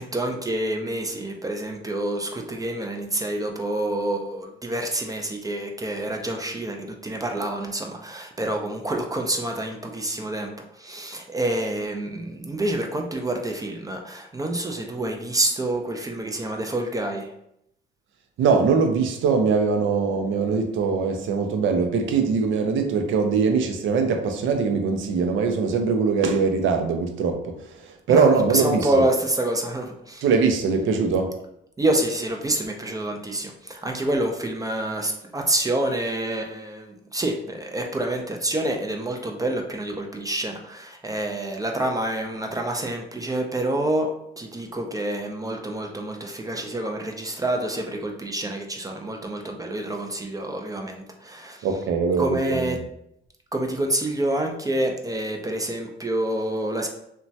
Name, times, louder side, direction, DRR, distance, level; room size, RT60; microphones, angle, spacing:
voice 1, 0.0-17.3 28.1-30.2 31.8-51.7 52.2-52.8 53.5-56.9, right 1 dB, 20° right, 0.4 m, -27 dB
voice 2, 18.4-29.1 30.2-31.3 51.6-52.8, right 5 dB, 75° right, 0.5 m, -22 dB
2.9 x 2.2 x 2.6 m
cardioid pair, 90°, 20 cm